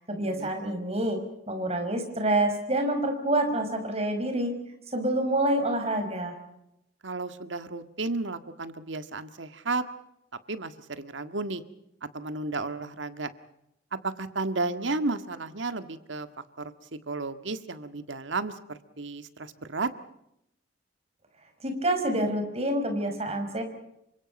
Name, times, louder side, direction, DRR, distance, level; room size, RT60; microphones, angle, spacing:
voice 1, 0.1-1.2 1.5-4.5 4.9-6.3 21.6-23.6, right 1 dB, 35° right, 5 dB, 5.6 m, -27 dB
voice 2, 7.0-9.8 10.5-11.6 12.1-13.3 14.0-16.3 16.6-19.9, right 3 dB, 75° right, 10 dB, 1.7 m, -33 dB
29.0 x 25.5 x 5.4 m, 0.81 s
head